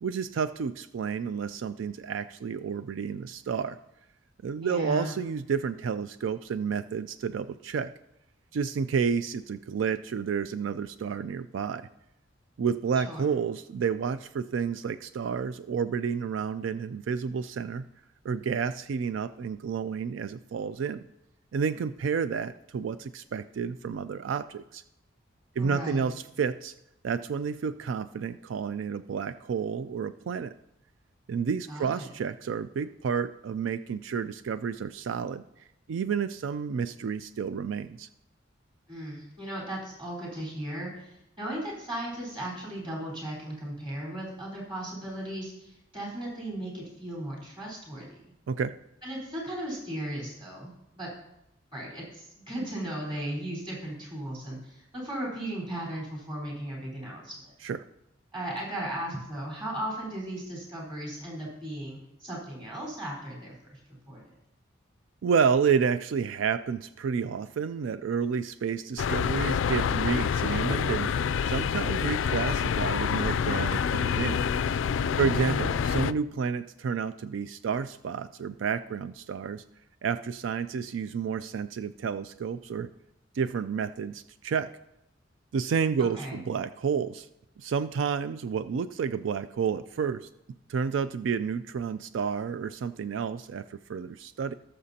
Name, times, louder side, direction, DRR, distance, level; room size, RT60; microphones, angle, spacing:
voice 1, 0.0-3.8 4.4-7.9 8.5-11.9 12.6-17.9 18.2-21.0 21.5-24.8 25.6-26.7 27.0-30.5 31.3-35.4 35.9-38.1 48.5-48.8 57.6-57.9 65.2-71.1 71.4-74.5 75.2-79.6 80.0-82.9 83.3-84.7 85.5-87.3 87.6-90.3 90.7-94.6, right 6 dB, 85° right, 13 dB, 0.3 m, -30 dB
voice 2, 4.6-5.1 13.0-13.2 25.6-26.0 31.7-32.1 38.9-48.2 49.0-51.1 51.7-57.5 58.3-63.8 64.1-64.2 75.2-75.7 86.1-86.4, right 1 dB, 25° right, -4 dB, 4.1 m, -36 dB
sound 1, 69.0-76.1, left 7 dB, 90° left, 0.3 m, -27 dB
18.5 x 6.7 x 2.8 m, 0.85 s
head